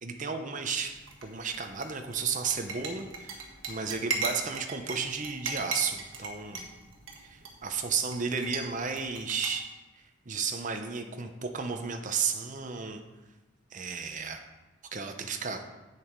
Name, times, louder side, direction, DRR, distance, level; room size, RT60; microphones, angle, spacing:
voice 1, 0.0-6.7 7.2-9.8 10.3-13.0 13.7-14.4 14.9-15.6, right 5 dB, 40° right, 5 dB, 0.7 m, -33 dB
sound 1, 0.9-9.5, right 3 dB, 60° right, 1.6 m, -39 dB
8.4 x 7.0 x 4.6 m, 1.1 s
head